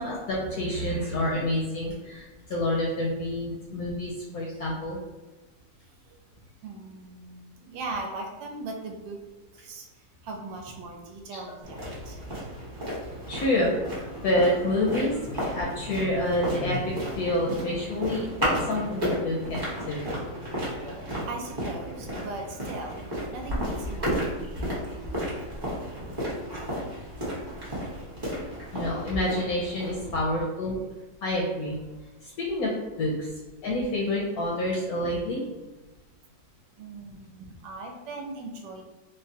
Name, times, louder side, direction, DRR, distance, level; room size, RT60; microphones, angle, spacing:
voice 1, 0.0-5.0 13.3-19.6 19.9-20.0 28.7-30.8 31.2-31.8 32.4-32.7 33.0-33.3 33.6-35.4, left 1 dB, 75° left, -3 dB, 0.9 m, -28 dB
voice 2, 6.6-9.2 9.5-9.9 10.2-12.2 21.3-25.5 30.0-30.2 36.8-38.8, right 3 dB, 80° right, 2 dB, 1.3 m, -39 dB
sound 1, 11.6-30.2, equal, 25° right, 0.5 m, -33 dB
3.6 x 2.0 x 2.6 m, 1.2 s
omnidirectional pair, 2.0 m